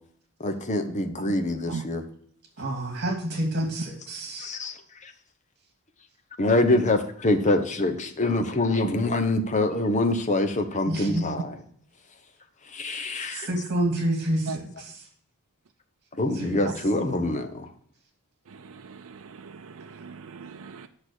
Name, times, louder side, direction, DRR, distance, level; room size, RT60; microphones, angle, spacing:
voice 1, 0.4-2.0 4.4-4.8 5.0-5.1 6.4-11.6 12.7-13.5 16.2-17.7, left 2 dB, 35° left, 7 dB, 1.1 m, -25 dB
voice 2, 2.6-4.5 10.9-11.3 12.9-15.0 16.3-16.6, right 1 dB, 50° right, 3 dB, 2.6 m, -29 dB
voice 3, 19.4-20.9, right 5 dB, 70° right, 6 dB, 0.5 m, -38 dB
8.6 x 6.3 x 6.4 m, 0.63 s
head